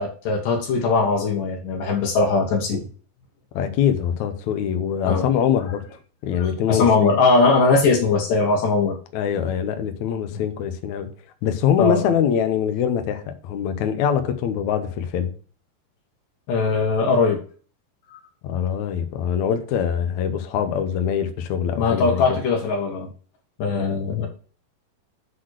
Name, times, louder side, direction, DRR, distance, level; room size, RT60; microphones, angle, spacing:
voice 1, 0.0-2.8 5.0-5.3 6.4-9.0 10.3-10.4 11.8-12.1 16.5-17.4 18.1-18.2 21.8-23.1 23.6-24.3, left 4 dB, 65° left, 2.4 m, -20 dB
voice 2, 3.5-5.8 6.2-7.1 9.1-11.1 11.4-15.3 18.4-22.2, left 8 dB, 85° left, 1.6 m, -23 dB
8.2 x 4.0 x 6.3 m
omnidirectional pair, 4.7 m